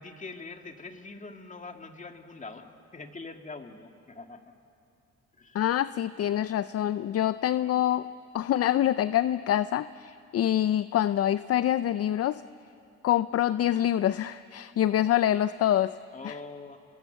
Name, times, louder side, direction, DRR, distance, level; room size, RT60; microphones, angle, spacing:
voice 1, 0.0-4.5 5.3-5.6 16.1-16.8, left 3 dB, 25° left, 5 dB, 2.1 m, -43 dB
voice 2, 5.5-8.1 8.3-12.4 13.0-16.0 16.2-16.4, left 11 dB, 50° left, 14 dB, 0.5 m, -26 dB
30.0 x 22.0 x 8.1 m, 2.6 s
cardioid pair, 90°, 30 cm